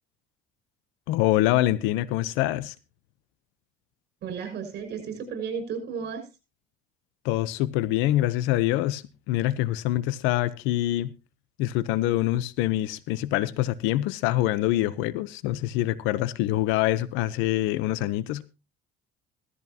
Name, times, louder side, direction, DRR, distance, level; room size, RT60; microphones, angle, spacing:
voice 1, 1.1-2.7 7.2-11.1 11.6-18.4, left 15 dB, 85° left, 0.9 m, -25 dB
voice 2, 4.2-6.2, right 6 dB, 60° right, 6.4 m, -33 dB
16.5 x 14.0 x 2.9 m
cardioid pair, 105°, 19 cm